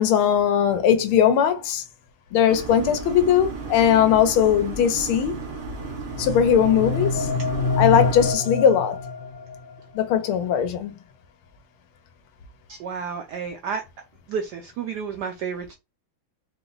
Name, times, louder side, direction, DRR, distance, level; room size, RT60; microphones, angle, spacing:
voice 1, 0.0-1.8 2.3-5.3 6.2-7.3 7.8-9.0 9.9-10.9, left 9 dB, 85° left, 1.6 m, -19 dB
sound 1, 2.5-8.3, right 4 dB, 55° right, 1.8 m, -34 dB
sound 2, 5.8-9.8, left 3 dB, 45° left, 0.4 m, -27 dB
voice 2, 12.7-13.8 14.3-15.8, right 6 dB, 80° right, 0.9 m, -31 dB
4.7 x 2.2 x 3.8 m
omnidirectional pair, 2.3 m